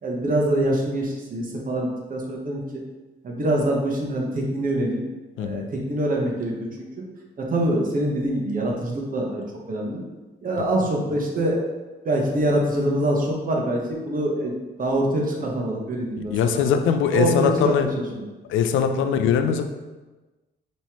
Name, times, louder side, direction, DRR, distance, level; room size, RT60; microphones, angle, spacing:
voice 1, 0.0-2.8 3.2-5.0 5.4-6.5 6.8-7.0 7.4-9.4 9.7-10.0 10.4-11.7 12.0-16.7 17.1-17.9 18.1-18.2 18.9-19.1, right 1 dB, 45° right, -1 dB, 1.1 m, -25 dB
voice 2, 16.2-17.9 18.5-19.7, left 7 dB, 80° left, 8 dB, 0.5 m, -21 dB
5.4 x 3.1 x 3.0 m, 1.2 s
cardioid pair, 90°, 20 cm